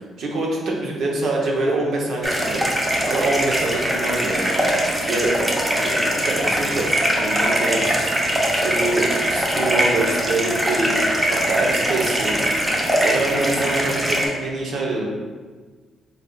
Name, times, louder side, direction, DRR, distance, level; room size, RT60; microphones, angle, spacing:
voice 1, 0.2-2.7 3.0-4.7 5.0-5.4 5.8-6.9 7.1-8.1 8.5-11.0 11.3-12.3 13.0-15.0, right 2 dB, 70° right, -1 dB, 0.8 m, -25 dB
sound 1, 2.2-14.3, right 1 dB, 15° right, 0.7 m, -22 dB
3.9 x 3.5 x 2.3 m, 1.4 s
cardioid pair, 90°, 0 cm